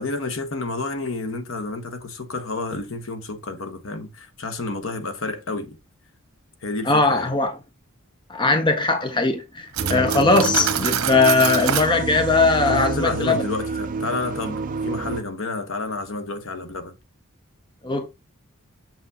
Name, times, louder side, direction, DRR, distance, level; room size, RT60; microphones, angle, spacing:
voice 1, 0.0-5.8 6.6-7.3 12.7-16.9, left 3 dB, 65° left, 1.1 m, -30 dB
voice 2, 6.9-7.5 8.3-13.4 17.8-18.1, left 3 dB, 20° left, 0.6 m, -20 dB
Cutlery silverware, 9.7-11.9, right 9 dB, 75° right, 0.9 m, -26 dB
sound 1, 9.8-15.2, right 4 dB, 40° right, 0.6 m, -29 dB
7.1 x 5.8 x 2.7 m
head